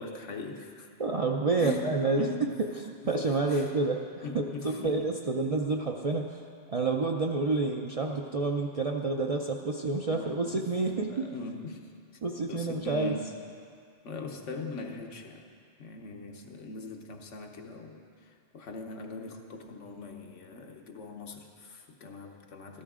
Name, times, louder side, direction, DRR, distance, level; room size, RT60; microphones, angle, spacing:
voice 1, 0.0-0.9 1.6-2.5 3.0-3.6 4.2-5.1 10.1-10.6 10.9-11.9 12.5-13.2 14.0-15.5 15.8-22.8, left 3 dB, 80° left, 3 dB, 1.3 m, -41 dB
voice 2, 1.0-6.4 6.7-11.3 12.2-13.2, right 3 dB, 45° right, 1 dB, 0.4 m, -29 dB
13.5 x 12.5 x 3.7 m, 2.2 s
omnidirectional pair, 1.2 m